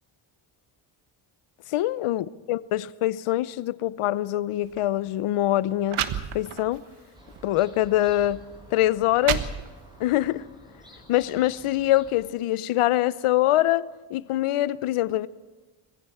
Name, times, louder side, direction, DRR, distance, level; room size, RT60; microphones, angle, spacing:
voice 1, 1.7-6.1 6.3-6.8 7.4-8.4 8.7-9.5 10.0-10.5 11.1-15.3, left 14 dB, 80° left, 0.9 m, -24 dB
sound 1, 4.6-4.8 5.5-5.6 5.9-6.8 7.4-7.5 8.3-8.4 8.9-10.0, right 9 dB, 75° right, 1.4 m, -30 dB
sound 2, 7.1-12.3, equal, 10° right, 6.8 m, -50 dB
22.0 x 15.5 x 8.7 m
cardioid pair, 80°, 50 cm